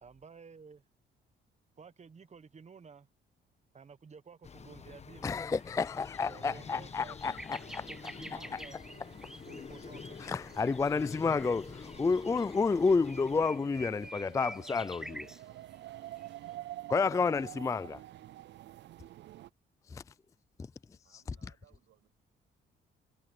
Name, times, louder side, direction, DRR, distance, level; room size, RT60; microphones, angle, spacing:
voice 1, 0.0-0.8 1.8-3.1 3.7-5.4 6.2-7.4 7.9-8.8 9.5-10.2, right 5 dB, 35° right, 1.2 m, -52 dB
sound 1, 4.4-13.5, left 5 dB, 35° left, 1.2 m, -48 dB
voice 2, 5.2-7.9 8.3-8.6 10.2-15.3 16.9-18.0 19.9-20.0, left 4 dB, 15° left, 0.3 m, -30 dB
sound 2, 5.6-5.7 6.2-6.3 6.6-15.4 16.2-16.4, equal, 5° right, 1.0 m, -49 dB
sound 3, 7.5-19.5, right 14 dB, 65° right, 0.4 m, -50 dB
voice 3, 21.0-22.1, right 12 dB, 80° right, 7.0 m, -67 dB
cardioid pair, 90°, 20 cm